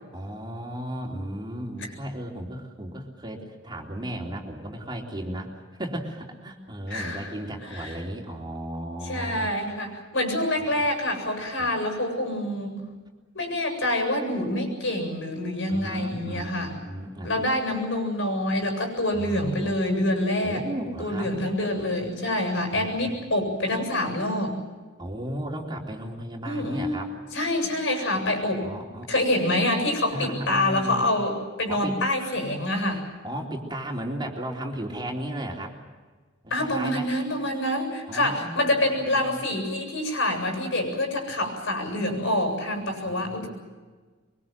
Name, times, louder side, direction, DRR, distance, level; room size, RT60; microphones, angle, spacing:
voice 1, 0.1-9.5 10.7-10.8 11.6-11.7 15.7-17.4 19.1-19.7 20.4-21.3 22.7-23.2 25.0-27.1 28.6-29.1 30.1-31.0 31.7-32.0 33.2-35.8 36.4-37.1 38.1-39.4 43.0-43.5, right 1 dB, 25° right, 0 dB, 3.6 m, -35 dB
voice 2, 6.9-7.3 7.7-8.0 9.0-12.8 13.3-16.7 17.2-20.6 21.0-24.6 26.4-27.0 27.3-28.7 29.1-33.0 36.5-43.5, left 1 dB, 70° left, 4 dB, 7.8 m, -26 dB
24.5 x 24.0 x 7.7 m, 1.4 s
head